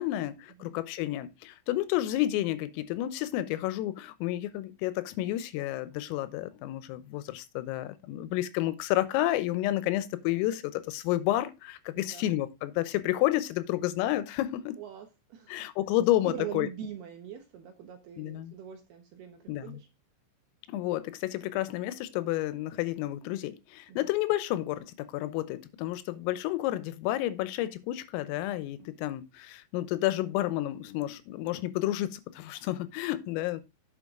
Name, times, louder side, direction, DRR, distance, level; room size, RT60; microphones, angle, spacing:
voice 1, 0.0-14.8 15.5-16.7 18.2-18.5 19.5-19.8 20.7-33.6, left 15 dB, 90° left, 3.5 m, -30 dB
voice 2, 12.0-12.3 14.8-15.6 16.2-19.9 23.9-24.0, right 9 dB, 70° right, 2.5 m, -42 dB
9.3 x 6.6 x 3.7 m
omnidirectional pair, 5.9 m